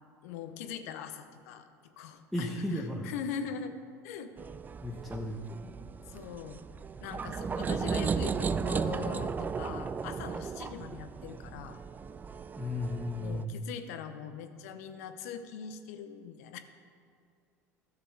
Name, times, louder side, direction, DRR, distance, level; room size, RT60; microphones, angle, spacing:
voice 1, 0.2-1.7 2.0-3.7 4.0-4.3 6.1-6.7 7.0-11.8 13.2-16.6, left 7 dB, 65° left, 9 dB, 0.8 m, -41 dB
voice 2, 2.3-3.1 4.8-5.4 12.6-13.7, left 1 dB, ahead, -3 dB, 1.2 m, -34 dB
sound 1, 4.4-13.4, right 5 dB, 20° right, 0.3 m, -35 dB
13.0 x 6.9 x 4.7 m, 2.3 s
figure-of-eight pair, 70°, 9 cm